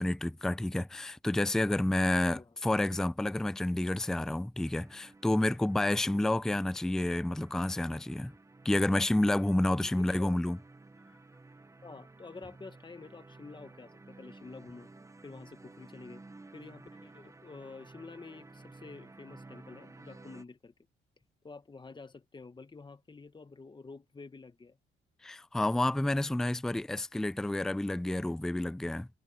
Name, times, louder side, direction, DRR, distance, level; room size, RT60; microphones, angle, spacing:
voice 1, 0.0-8.3 8.6-10.6 25.2-29.1, left 1 dB, 5° left, 0.4 m, -29 dB
sound 1, 4.6-20.4, right 3 dB, 15° right, 1.0 m, -54 dB
voice 2, 9.8-10.4 11.8-14.9 15.2-16.2 16.5-20.7 21.4-24.8, left 4 dB, 25° left, 1.5 m, -49 dB
cardioid pair, 90°, 20 cm